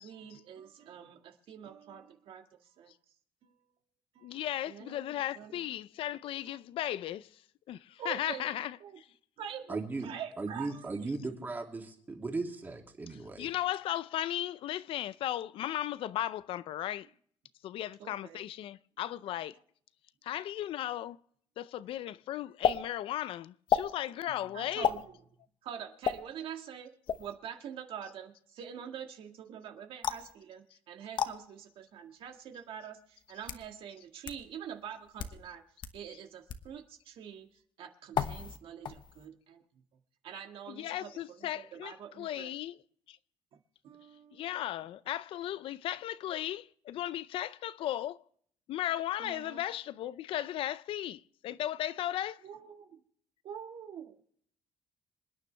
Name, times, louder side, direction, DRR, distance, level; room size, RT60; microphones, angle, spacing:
voice 1, 0.0-2.9 3.4-3.5 4.2-4.4 4.6-5.8 6.5-6.6 8.0-9.0 9.4-11.1 18.0-18.4 20.8-20.9 24.1-25.2 25.6-35.6 35.9-37.5 37.8-39.6 40.2-42.5 43.5-43.6 43.8-44.6 49.2-49.7 52.4-53.0 53.4-54.3, right 8 dB, 70° right, 1.9 m, -46 dB
voice 2, 4.2-7.3 7.7-9.0 13.4-17.1 17.6-19.6 20.2-21.2 21.6-24.9 40.8-42.7 43.1-43.2 44.3-48.2 48.7-52.4, left 12 dB, 70° left, 0.5 m, -36 dB
voice 3, 9.7-10.1 10.4-13.5, right 3 dB, 20° right, 2.7 m, -37 dB
sound 1, 22.6-22.8 23.7-23.9 24.8-25.0 26.0-26.2 27.1-27.3 30.0-30.3 31.2-31.3 32.3-32.4 33.2-33.7 34.3-34.4 35.1-35.4 35.8-35.9 36.5-36.7 38.1-38.6 38.8-39.3, left 8 dB, 55° left, 1.1 m, -31 dB
27.0 x 9.9 x 3.3 m
cardioid pair, 125°, 9 cm